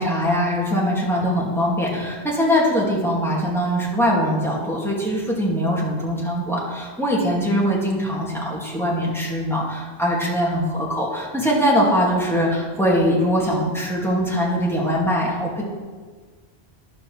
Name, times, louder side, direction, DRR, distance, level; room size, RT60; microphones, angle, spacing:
voice 1, 0.0-15.6, equal, ahead, -5 dB, 2.4 m, -22 dB
11.0 x 5.9 x 6.4 m, 1.5 s
omnidirectional pair, 1.1 m